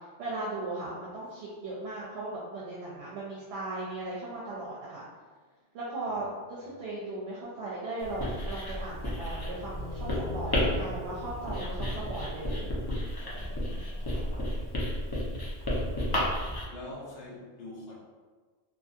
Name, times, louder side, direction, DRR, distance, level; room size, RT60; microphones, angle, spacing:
voice 1, 0.2-5.0 5.7-12.7, right 2 dB, 70° right, -6 dB, 0.8 m, -37 dB
Writing, 8.0-16.6, left 1 dB, 30° left, 0.4 m, -32 dB
sound 1, 8.7-13.2, left 1 dB, 75° left, 1.3 m, -41 dB
voice 2, 13.2-14.3 16.7-18.0, left 2 dB, 60° left, -4 dB, 0.9 m, -45 dB
2.7 x 2.6 x 2.4 m, 1.4 s
omnidirectional pair, 1.2 m